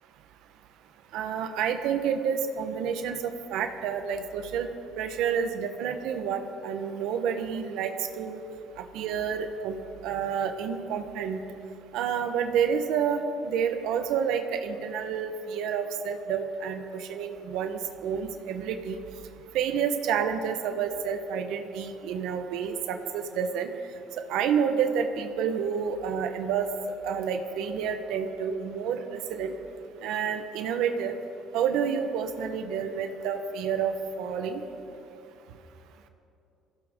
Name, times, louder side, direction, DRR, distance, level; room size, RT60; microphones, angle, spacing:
voice 1, 1.1-4.7 5.0-8.4 8.8-11.4 11.9-19.0 19.5-23.7 24.3-26.7 27.0-29.5 30.0-31.1 31.5-34.6, right 7 dB, 75° right, 6 dB, 1.1 m, -29 dB
23.0 x 15.5 x 3.8 m, 2.7 s
cardioid pair, 160°, 0 cm